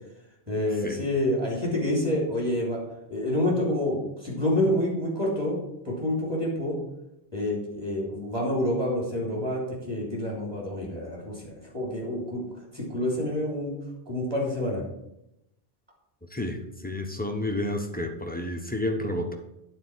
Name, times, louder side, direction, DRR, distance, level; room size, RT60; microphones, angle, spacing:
voice 1, 0.5-2.8 3.1-5.6 5.8-6.8 7.3-12.4 12.7-13.7 14.1-14.8, left 1 dB, 25° right, -3 dB, 3.3 m, -28 dB
voice 2, 16.3-19.3, left 1 dB, 10° left, 3 dB, 0.8 m, -30 dB
9.4 x 4.5 x 6.2 m, 0.84 s
omnidirectional pair, 1.1 m